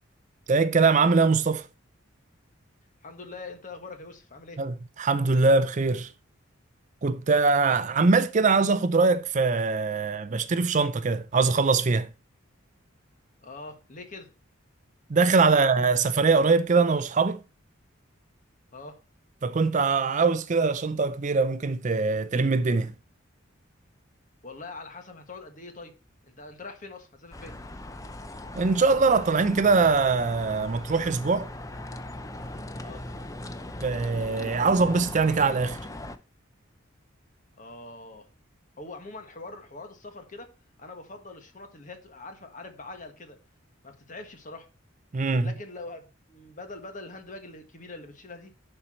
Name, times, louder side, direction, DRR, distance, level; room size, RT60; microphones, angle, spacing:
voice 1, 0.5-1.7 4.6-6.1 7.0-12.1 15.1-17.4 19.4-22.9 28.5-31.5 33.8-35.8 45.1-45.5, right 4 dB, 35° right, 0.5 m, -22 dB
voice 2, 3.0-4.6 13.4-14.3 15.3-15.6 18.7-19.0 24.4-25.9 26.3-27.6 32.8-33.0 37.6-38.3 38.8-40.5 40.8-43.4 43.8-44.7 45.4-48.5, left 3 dB, 40° left, 1.5 m, -43 dB
sound 1, 27.3-36.2, left 1 dB, 15° left, 0.6 m, -39 dB
11.0 x 4.5 x 4.3 m
head